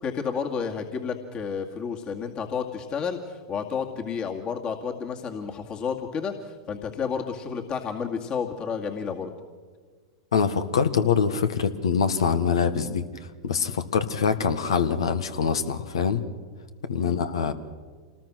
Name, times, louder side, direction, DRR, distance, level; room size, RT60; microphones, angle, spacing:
voice 1, 0.0-9.3 17.0-17.2, left 6 dB, 35° left, 2 dB, 2.2 m, -31 dB
voice 2, 10.3-13.1 13.4-16.2 16.8-17.5, left 6 dB, 80° left, 10 dB, 1.4 m, -24 dB
27.0 x 19.5 x 6.3 m, 1.5 s
hypercardioid pair, 100°, 3 cm